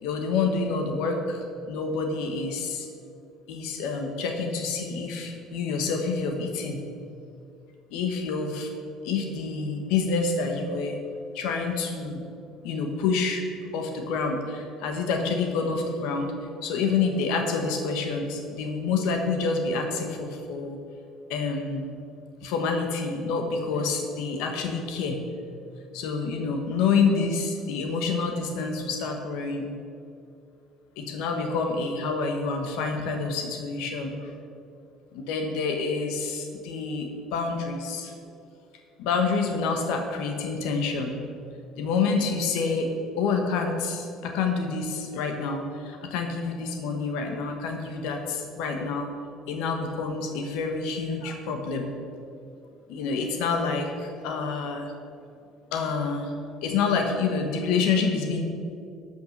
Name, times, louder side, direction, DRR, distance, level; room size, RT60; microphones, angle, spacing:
voice 1, 0.0-2.9 3.5-6.8 7.9-8.7 9.0-11.0 11.3-12.2 12.6-13.4 13.7-16.3 16.6-20.8 21.3-21.9 22.4-25.2 25.9-29.7 31.0-34.3 35.1-38.1 39.0-41.2 41.8-49.1 49.5-52.2 52.9-54.9 55.7-56.3 56.6-58.4, left 4 dB, 85° left, 4 dB, 1.2 m, -28 dB
12.5 x 5.7 x 6.5 m, 2.5 s
cardioid pair, 165°, 0 cm